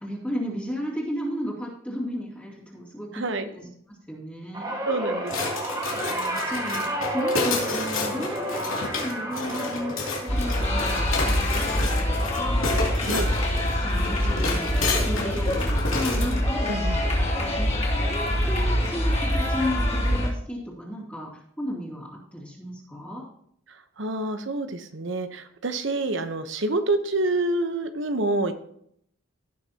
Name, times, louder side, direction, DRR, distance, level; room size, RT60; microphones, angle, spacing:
voice 1, 0.0-3.3 3.5-4.7 6.1-23.2, equal, 5° left, -6 dB, 2.6 m, -34 dB
voice 2, 3.1-3.4 4.8-5.3 13.1-13.3 16.7-17.0 23.7-28.5, right 2 dB, 60° right, 9 dB, 1.0 m, -27 dB
sound 1, 4.5-15.0 15.3-15.7 16.9-17.0, right 1 dB, 20° right, 1.6 m, -33 dB
sound 2, 5.3-16.4, left 3 dB, 75° left, 2.7 m, -30 dB
sound 3, 10.3-20.3, equal, 30° left, 2.4 m, -25 dB
17.0 x 6.5 x 2.9 m, 0.69 s
head